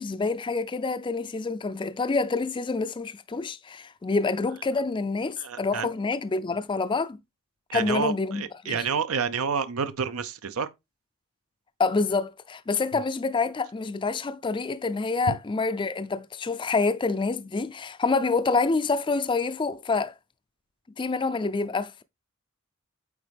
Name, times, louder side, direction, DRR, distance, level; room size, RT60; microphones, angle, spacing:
voice 1, 0.0-7.2 7.7-8.9 11.8-20.1 21.0-22.0, left 4 dB, 25° left, 0.4 m, -27 dB
voice 2, 5.4-5.9 7.7-10.7, right 6 dB, 80° right, 0.6 m, -29 dB
8.4 x 4.2 x 3.4 m
head